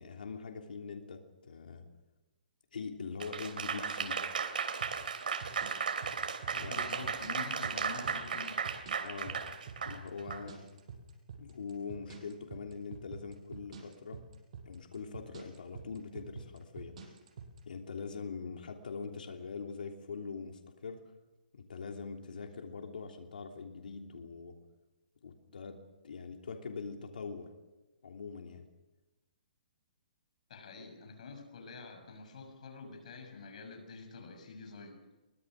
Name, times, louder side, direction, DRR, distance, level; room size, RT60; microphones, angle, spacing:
voice 1, 0.0-1.8 2.7-4.2 6.5-6.8 9.0-9.4 9.8-10.6 11.4-14.2 14.6-17.0 17.7-21.0 21.5-24.5 25.2-25.8 26.0-27.5 28.0-28.7, left 5 dB, 80° left, 3 dB, 3.1 m, -43 dB
Applause / Crowd, 3.2-10.4, right 6 dB, 75° right, 3.3 m, -35 dB
sound 1, 4.8-17.6, right 6 dB, 45° right, 6.3 m, -47 dB
voice 2, 6.5-8.6 30.5-35.0, left 4 dB, 55° left, 5 dB, 6.7 m, -47 dB
23.5 x 21.5 x 6.5 m, 1.1 s
hypercardioid pair, 165°, 5 cm